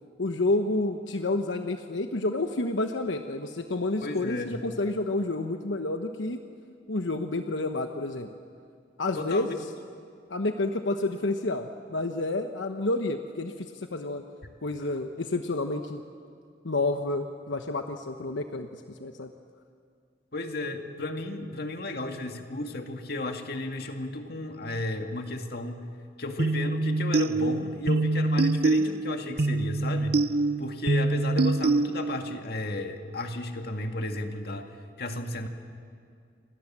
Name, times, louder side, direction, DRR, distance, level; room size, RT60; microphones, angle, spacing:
voice 1, 0.2-6.4 6.9-8.3 9.0-9.6 10.3-14.2 14.6-16.0 16.6-19.3, left 2 dB, 85° left, 6 dB, 1.1 m, -29 dB
voice 2, 4.0-4.6 9.2-9.6 20.3-25.8 26.2-30.2 30.6-35.5, left 2 dB, 55° left, 5 dB, 2.1 m, -34 dB
sound 1, 26.4-32.4, right 3 dB, 55° right, 0.6 m, -25 dB
29.0 x 26.5 x 7.5 m, 2.3 s
head